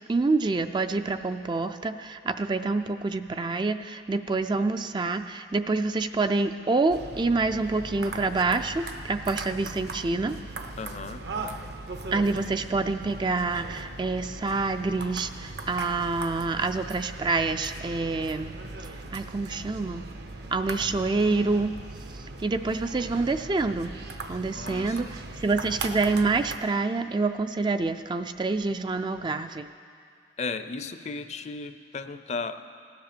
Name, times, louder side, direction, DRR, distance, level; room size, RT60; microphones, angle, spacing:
voice 1, 0.1-10.4 12.1-18.6 18.9-20.0 20.5-21.7 22.4-23.9 24.3-29.7, right 3 dB, 25° right, 9 dB, 0.4 m, -27 dB
sound 1, 6.9-26.6, right 2 dB, 60° right, 0.8 m, -39 dB
voice 2, 10.8-11.2 24.5-25.1 30.4-32.6, left 4 dB, 40° left, 10 dB, 0.5 m, -35 dB
16.5 x 10.5 x 6.8 m, 2.3 s
head